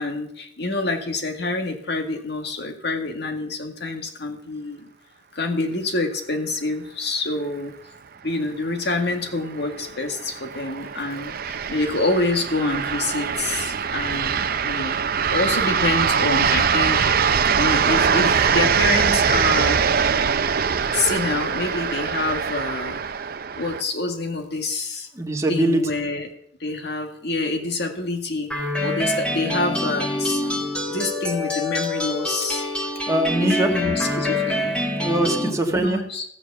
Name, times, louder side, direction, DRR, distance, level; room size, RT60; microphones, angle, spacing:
voice 1, 0.0-4.9 5.3-7.7 8.2-15.0 15.3-17.1 17.5-19.8 20.4-20.5 20.9-23.0 23.6-25.1 25.5-26.3 26.6-28.5 28.8-30.6 30.9-32.6 33.4-34.8 35.4-36.2, left 2 dB, 65° left, 4 dB, 1.9 m, -27 dB
sound 1, 8.9-23.8, right 6 dB, 55° right, 0.7 m, -22 dB
voice 2, 25.2-25.8 33.1-33.7 34.9-36.0, right 1 dB, 15° right, 2 dB, 1.6 m, -22 dB
sound 2, 28.5-35.5, left 1 dB, 5° left, 1.6 m, -26 dB
14.5 x 7.2 x 6.9 m, 0.69 s
head